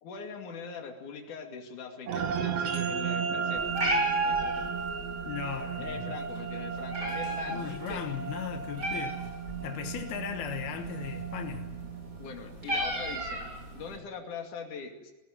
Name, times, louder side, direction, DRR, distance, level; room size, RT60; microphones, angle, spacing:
voice 1, 0.0-3.8 4.2-4.8 5.8-8.2 12.2-13.4 13.7-15.1, left 5 dB, 55° left, 3.7 m, -42 dB
sound 1, 2.1-12.7, right 6 dB, 65° right, 1.7 m, -35 dB
Meow, 3.5-14.0, right 2 dB, 25° right, 4.5 m, -35 dB
voice 2, 5.2-6.2 7.5-9.4 9.6-11.7, left 9 dB, 85° left, 3.3 m, -37 dB
19.5 x 18.0 x 9.1 m
omnidirectional pair, 4.3 m